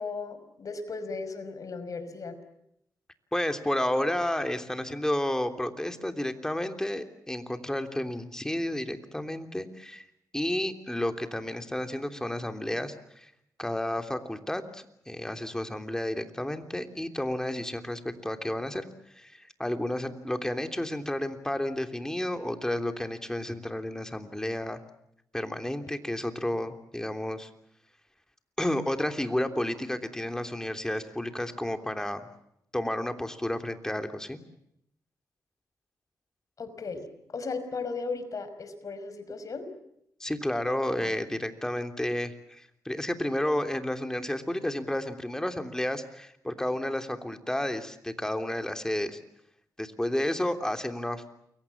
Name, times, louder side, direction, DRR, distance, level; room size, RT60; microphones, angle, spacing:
voice 1, 0.0-2.4 36.6-39.7, left 4 dB, 55° left, 10 dB, 5.4 m, -36 dB
voice 2, 3.3-10.0 10.3-13.3 13.6-18.9 19.1-24.8 25.3-27.5 28.6-32.3 32.7-34.4 40.2-49.2 49.8-51.2, left 1 dB, 10° left, 7 dB, 3.2 m, -31 dB
29.5 x 23.0 x 7.3 m, 0.76 s
cardioid pair, 75°, 7 cm